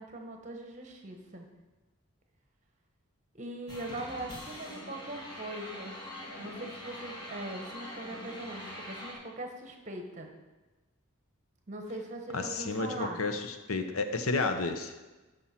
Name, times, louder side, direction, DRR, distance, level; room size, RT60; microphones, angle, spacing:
voice 1, 0.0-1.5 3.3-6.0 6.4-10.3 11.7-13.2, right 2 dB, 35° right, 3 dB, 1.2 m, -41 dB
sound 1, 3.7-9.1, left 1 dB, 20° left, 1.6 m, -43 dB
voice 2, 12.3-14.9, left 3 dB, 75° left, 8 dB, 0.8 m, -31 dB
13.0 x 5.5 x 4.4 m, 1.2 s
head